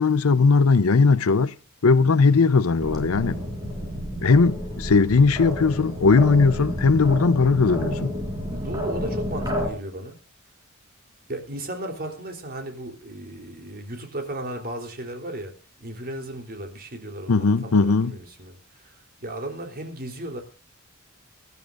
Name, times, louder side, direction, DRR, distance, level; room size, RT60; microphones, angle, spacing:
voice 1, 0.0-1.5 1.8-3.4 4.2-8.1 17.3-18.1, left 4 dB, 75° left, 0.7 m, -18 dB
sound 1, 2.8-9.7, equal, 20° right, 4.9 m, -30 dB
voice 2, 6.5-6.9 8.5-10.2 11.3-20.4, right 1 dB, 45° right, 3.4 m, -35 dB
24.5 x 12.0 x 2.5 m
head